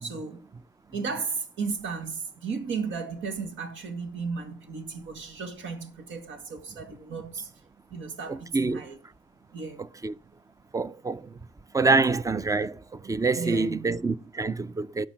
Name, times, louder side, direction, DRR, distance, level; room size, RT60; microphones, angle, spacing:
voice 1, 0.0-0.4 0.9-7.5 7.9-9.0 9.5-9.8 13.4-14.0, right 5 dB, 75° right, 2.1 m, -34 dB
voice 2, 8.3-8.8 10.0-10.1 10.7-11.3 11.7-15.1, right 3 dB, 15° right, 0.5 m, -26 dB
10.0 x 6.0 x 7.1 m
cardioid pair, 90°, 20 cm